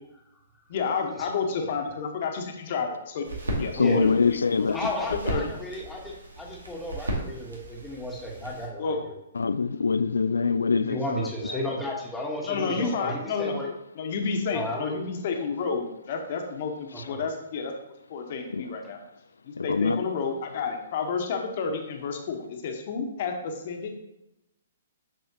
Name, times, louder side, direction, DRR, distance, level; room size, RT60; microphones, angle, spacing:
voice 1, 0.7-4.9 5.2-5.5 8.8-9.0 12.4-13.5 13.9-17.7 18.1-19.0 19.4-24.0, left 5 dB, 45° left, 1.2 m, -30 dB
sound 1, 3.2-8.6, right 1 dB, 75° right, 1.8 m, -36 dB
voice 2, 3.8-4.7 9.4-11.0 19.7-20.0, left 5 dB, 70° left, 0.3 m, -23 dB
voice 3, 4.7-9.1 10.8-13.7 14.5-14.9 16.9-17.2, left 1 dB, 5° left, 1.4 m, -33 dB
7.5 x 6.2 x 2.9 m
figure-of-eight pair, 120°, 0 cm